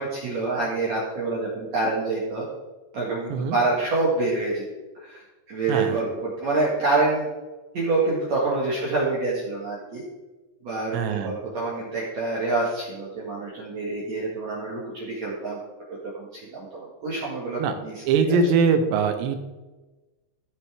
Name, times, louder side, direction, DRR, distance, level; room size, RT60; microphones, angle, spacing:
voice 1, 0.0-2.5 2.9-4.6 5.0-5.2 5.5-7.3 7.7-10.0 10.6-15.6 15.9-18.4, right 3 dB, 50° right, -6 dB, 2.3 m, -27 dB
voice 2, 5.7-6.0 10.9-11.3 17.6-17.7 18.0-19.4, right 5 dB, 80° right, 7 dB, 3.1 m, -22 dB
16.0 x 6.7 x 3.6 m, 1.2 s
omnidirectional pair, 5.0 m